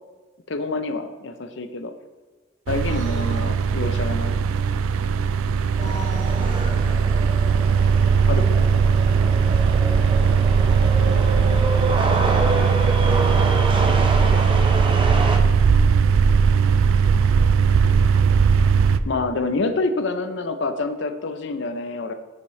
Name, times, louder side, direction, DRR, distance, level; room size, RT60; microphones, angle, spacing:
voice 1, 0.5-1.9 2.7-4.4 8.3-8.8 13.0-13.2 19.0-22.1, left 3 dB, 60° left, 9 dB, 0.5 m, -27 dB
sound 1, 2.7-19.0, right 6 dB, 80° right, 0.3 m, -19 dB
voice 2, 2.9-3.5 5.8-6.8 10.6-12.5, right 1 dB, 65° right, -4 dB, 2.6 m, -39 dB
sound 2, 5.8-15.4, right 1 dB, 25° right, 0.6 m, -27 dB
10.0 x 5.9 x 3.2 m, 1.3 s
head